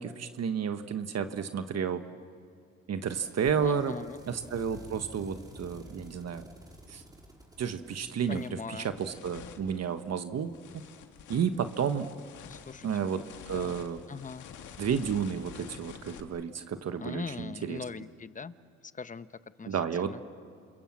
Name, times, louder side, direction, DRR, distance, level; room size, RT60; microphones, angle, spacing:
voice 1, 0.0-2.0 2.9-3.9 4.3-6.4 6.9-7.0 7.6-8.4 8.7-10.8 11.3-12.1 12.8-14.0 14.8-17.8 19.7-20.1, right 7 dB, 55° right, 8 dB, 1.4 m, -31 dB
sound 1, 3.0-9.5, equal, 10° right, 4.3 m, -51 dB
voice 2, 3.6-4.2 8.3-8.9 12.5-13.2 13.5-13.8 14.1-14.5 17.0-18.5 18.9-19.3 19.6-19.8 20.0-20.2, left 5 dB, 25° left, 13 dB, 0.9 m, -40 dB
sound 2, 7.4-7.5 8.0-16.2, left 8 dB, 80° left, 2.0 m, -49 dB
28.0 x 27.0 x 7.5 m, 2.4 s
cardioid pair, 90°, 30 cm